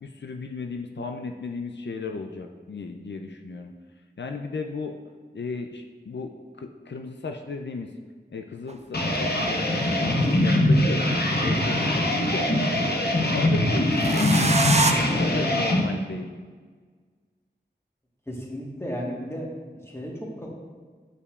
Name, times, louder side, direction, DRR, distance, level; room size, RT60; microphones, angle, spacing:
voice 1, 0.0-3.7 4.2-5.0 5.3-6.3 6.6-7.9 8.3-11.0 11.4-12.5 12.9-14.4 15.0-16.3, left 4 dB, 80° left, 4 dB, 0.4 m, -34 dB
sound 1, 8.7-8.8 10.0-11.1 13.9-14.9, right 3 dB, 40° right, 0.5 m, -25 dB
sound 2, 8.9-15.8, left 1 dB, 65° left, 0.8 m, -22 dB
voice 2, 18.3-20.5, equal, 15° left, -2 dB, 1.3 m, -34 dB
8.4 x 5.5 x 2.4 m, 1.5 s
wide cardioid pair, 40°, 18 cm